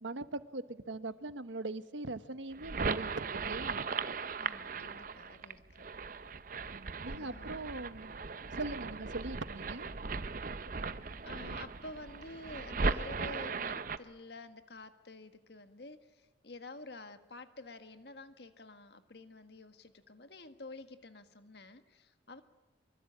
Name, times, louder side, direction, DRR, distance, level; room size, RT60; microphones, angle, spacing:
voice 1, 0.0-3.8 6.7-8.1 8.5-9.9, right 2 dB, 90° right, 12 dB, 1.2 m, -41 dB
sound 1, 2.5-14.0, right 4 dB, 45° right, 0.7 m, -38 dB
voice 2, 4.4-5.6 7.1-7.5 11.2-22.4, left 2 dB, 60° left, 9 dB, 1.5 m, -49 dB
24.0 x 23.5 x 8.7 m, 1.2 s
head